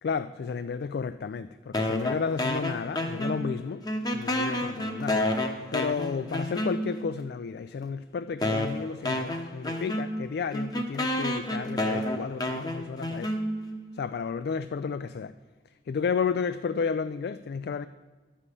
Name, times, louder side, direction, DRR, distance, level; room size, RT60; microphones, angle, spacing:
voice 1, 0.0-3.8 4.1-13.3 13.9-15.3 15.9-17.9, left 5 dB, 60° left, 0.3 m, -32 dB
sound 1, 1.7-3.6 3.8-7.1 7.8-7.9 8.4-13.8, left 1 dB, 25° left, 1.0 m, -30 dB
12.0 x 5.6 x 8.2 m
head